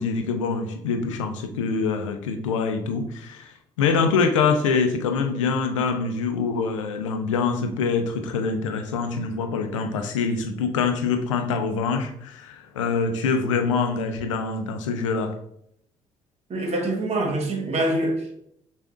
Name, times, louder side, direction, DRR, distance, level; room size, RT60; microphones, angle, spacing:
voice 1, 0.0-15.3, left 5 dB, 85° left, 6 dB, 0.5 m, -25 dB
voice 2, 16.5-18.4, right 1 dB, 40° right, 2 dB, 1.2 m, -25 dB
6.4 x 2.4 x 2.4 m, 0.71 s
hypercardioid pair, 50°, 16 cm